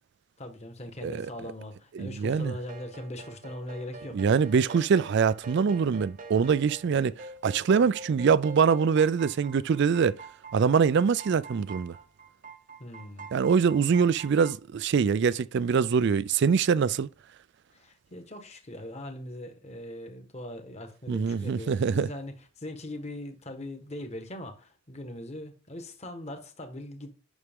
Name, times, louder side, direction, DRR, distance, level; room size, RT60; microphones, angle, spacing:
voice 1, 0.4-4.2 12.8-13.3 17.7-27.2, left 1 dB, 30° left, 1.3 m, -41 dB
voice 2, 2.0-2.5 4.1-7.1 7.4-10.1 10.5-11.9 13.3-17.1 21.1-22.1, right 6 dB, 50° right, 0.3 m, -24 dB
sound 1, 2.6-14.5, right 3 dB, 35° right, 0.7 m, -46 dB
9.6 x 6.0 x 3.6 m
head